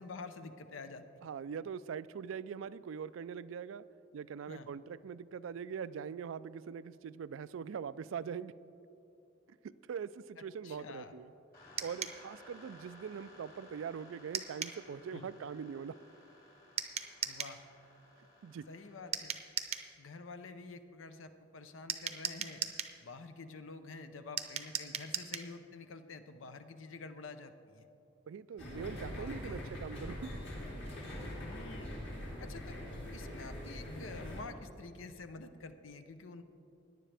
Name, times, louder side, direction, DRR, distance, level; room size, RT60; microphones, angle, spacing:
voice 1, 0.0-1.3 4.5-4.7 10.4-11.1 15.1-15.3 17.2-17.6 18.7-19.4 20.0-22.6 23.0-27.9 29.1-29.7 31.4-32.0 32.4-32.8 33.1-36.4, left 3 dB, 85° left, 9 dB, 0.7 m, -48 dB
voice 2, 1.2-3.8 4.1-8.5 9.6-11.3 11.8-15.9 18.4-18.7 28.3-30.4, right 7 dB, 80° right, 17 dB, 0.3 m, -42 dB
sound 1, 11.5-19.1, left 1 dB, 50° left, 3.0 m, -58 dB
sound 2, 11.8-12.2 14.3-14.8 16.8-17.6 19.1-19.9 21.9-23.0 24.4-25.5, right 7 dB, 30° right, 0.6 m, -38 dB
sound 3, 28.6-34.4, left 1 dB, 65° left, 2.8 m, -43 dB
17.5 x 10.0 x 3.4 m, 2.8 s
head